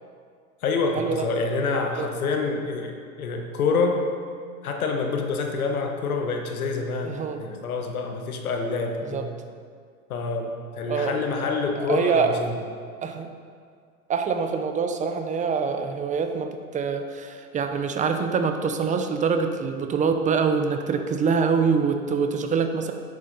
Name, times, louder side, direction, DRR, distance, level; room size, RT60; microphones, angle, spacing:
voice 1, 0.6-4.0 4.6-9.3 10.1-12.5, left 4 dB, 70° left, 3 dB, 1.3 m, -27 dB
voice 2, 7.0-7.4 9.0-9.3 10.9-11.2 11.8-12.3 13.0-13.3 14.1-22.9, right 5 dB, 15° right, 6 dB, 0.7 m, -25 dB
11.0 x 8.4 x 4.1 m, 2.1 s
hypercardioid pair, 100°, 44 cm